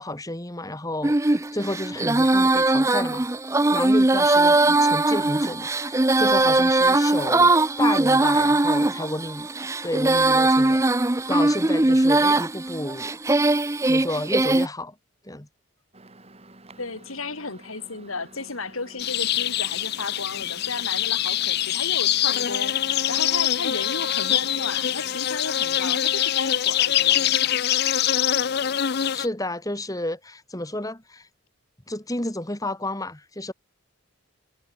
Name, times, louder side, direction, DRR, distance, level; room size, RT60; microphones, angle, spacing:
voice 1, 0.0-3.3 3.7-9.5 9.8-10.8 11.3-13.1 13.8-15.0 15.2-15.5 28.9-31.3 31.9-33.5, left 1 dB, 15° left, 2.1 m, -31 dB
Female singing, 1.0-14.7, right 2 dB, 15° right, 0.5 m, -20 dB
Microwave oven, 15.9-25.2, right 2 dB, 30° right, 2.3 m, -49 dB
voice 2, 16.8-27.6, left 3 dB, 75° left, 3.4 m, -34 dB
sound 1, 19.0-29.3, left 11 dB, 50° left, 0.5 m, -24 dB
head